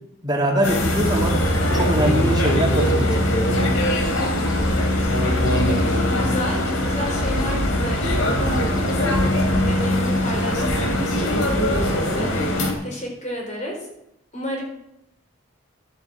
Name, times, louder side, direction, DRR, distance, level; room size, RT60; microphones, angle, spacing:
voice 1, 0.2-1.4 1.7-3.3, right 1 dB, 20° right, -1 dB, 2.8 m, -22 dB
sound 1, 0.6-12.7, left 1 dB, 90° left, 3.1 m, -22 dB
sound 2, 0.8-12.6, left 1 dB, 20° left, 2.7 m, -28 dB
voice 2, 4.6-9.1 9.5-12.3 12.8-13.9 14.3-14.6, left 1 dB, 35° left, 0 dB, 4.1 m, -32 dB
13.0 x 8.2 x 7.6 m, 0.80 s
head